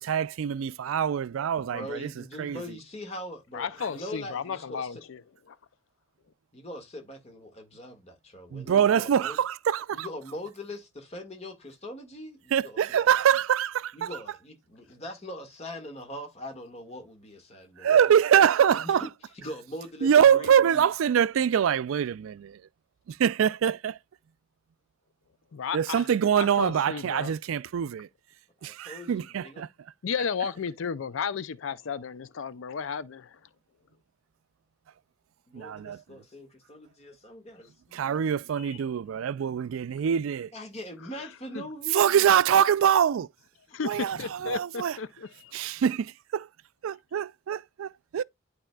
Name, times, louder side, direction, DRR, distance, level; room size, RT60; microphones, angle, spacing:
voice 1, 0.1-2.1 2.4-2.6 8.5-10.1 12.5-14.1 17.8-19.0 20.0-22.6 23.1-24.0 25.7-28.1 28.6-29.7 35.5-36.0 37.9-40.5 41.9-43.3 43.8-45.0 45.5-46.5 46.8-48.2, right 8 dB, 90° right, 0.3 m, -24 dB
voice 2, 1.6-4.9 6.5-9.4 9.9-13.0 13.9-18.1 18.7-19.1 19.3-20.9 28.6-29.6 35.5-38.4 40.5-42.3 43.7-43.8, left 1 dB, 30° left, 1.7 m, -42 dB
voice 3, 3.5-5.2 25.5-26.1 26.4-27.3 30.0-33.4 38.6-38.8 41.1-41.3 41.5-41.6 43.7-45.7, left 6 dB, 75° left, 0.4 m, -33 dB
11.5 x 4.1 x 2.3 m
head